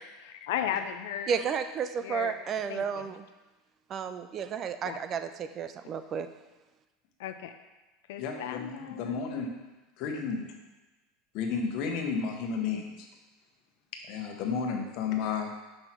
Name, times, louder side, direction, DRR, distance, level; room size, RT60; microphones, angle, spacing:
voice 1, 0.2-1.3 2.0-2.3 2.7-2.8 4.9-5.0 7.2-7.5 8.1-9.2, left 10 dB, 80° left, 8 dB, 0.4 m, -35 dB
voice 2, 1.3-3.3 3.9-6.3, right 7 dB, 30° right, 10 dB, 0.3 m, -32 dB
voice 3, 8.2-9.5 10.0-10.5 11.3-13.1 14.1-15.5, left 5 dB, 55° left, 3 dB, 1.1 m, -32 dB
6.0 x 5.5 x 4.4 m, 1.1 s
supercardioid pair, 145°, 0 cm